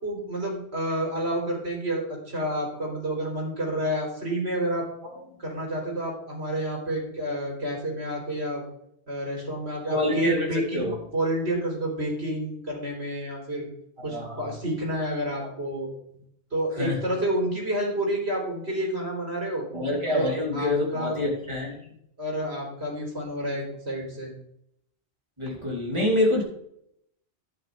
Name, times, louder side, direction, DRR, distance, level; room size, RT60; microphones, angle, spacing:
voice 1, 0.0-4.9 5.4-8.6 9.1-10.8 11.1-13.7 14.0-15.9 16.5-19.6 20.0-20.3 20.5-21.2 22.2-24.3, right 1 dB, 70° right, -1 dB, 4.3 m, -29 dB
voice 2, 9.9-10.4 10.7-10.9 14.0-14.5 16.8-17.0 19.7-21.8 25.4-26.4, left 1 dB, 25° right, -3 dB, 3.7 m, -26 dB
11.0 x 9.5 x 3.6 m, 0.73 s
omnidirectional pair, 1.1 m